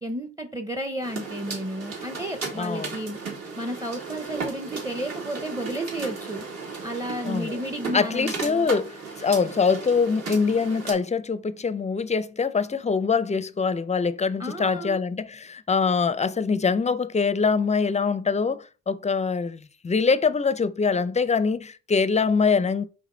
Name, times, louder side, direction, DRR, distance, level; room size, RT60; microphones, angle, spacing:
voice 1, 0.0-3.2 3.6-6.4 6.8-8.7 14.4-15.0, right 1 dB, 10° right, 0.8 m, -32 dB
sound 1, 1.0-10.9, right 4 dB, 60° right, 3.0 m, -35 dB
voice 2, 2.5-3.0 7.2-7.6 7.9-8.9 9.2-22.8, left 5 dB, 25° left, 0.5 m, -24 dB
5.0 x 5.0 x 3.9 m
cardioid pair, 90°, 30 cm